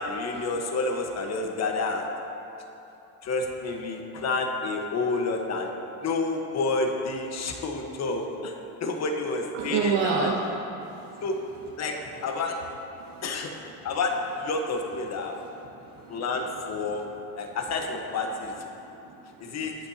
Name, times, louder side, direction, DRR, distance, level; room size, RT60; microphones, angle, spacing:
voice 1, 0.0-2.1 3.2-5.7 6.0-10.3 11.2-11.4 11.8-12.6 13.2-13.5 13.8-15.4 16.1-17.0 17.4-18.5 19.4-19.8, left 3 dB, 35° left, 3 dB, 1.3 m, -29 dB
voice 2, 9.5-10.5 10.8-11.3 12.9-13.2 15.3-15.5 15.8-16.2 16.9-17.2 18.7-19.4, right 6 dB, 75° right, -4 dB, 1.6 m, -30 dB
20.5 x 8.8 x 2.8 m, 2.9 s
cardioid pair, 140°, 44 cm